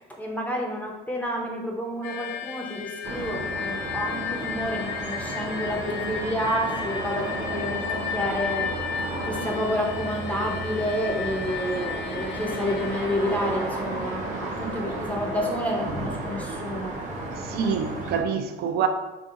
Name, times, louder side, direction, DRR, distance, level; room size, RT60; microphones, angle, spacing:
voice 1, 0.2-8.7 9.2-17.0, equal, 5° left, 0.6 m, -29 dB
sound 1, 2.0-14.4, left 7 dB, 70° left, 0.5 m, -34 dB
sound 2, 3.0-18.2, right 2 dB, 40° right, 0.8 m, -33 dB
voice 2, 17.3-18.9, right 7 dB, 55° right, 0.4 m, -26 dB
3.6 x 2.5 x 2.7 m
supercardioid pair, 90°, 20 cm